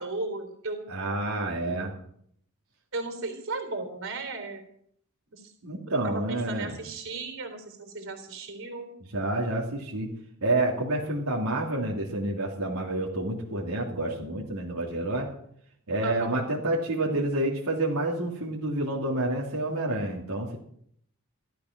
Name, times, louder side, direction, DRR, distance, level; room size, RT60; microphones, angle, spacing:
voice 1, 0.0-0.9 2.9-4.6 5.3-5.4 5.9-8.9 16.0-16.5, right 3 dB, 60° right, 7 dB, 3.7 m, -35 dB
voice 2, 0.9-1.9 5.6-6.8 9.0-10.1 10.4-15.3 15.9-20.6, right 1 dB, 85° right, -3 dB, 3.0 m, -29 dB
16.0 x 12.5 x 6.1 m, 0.67 s
head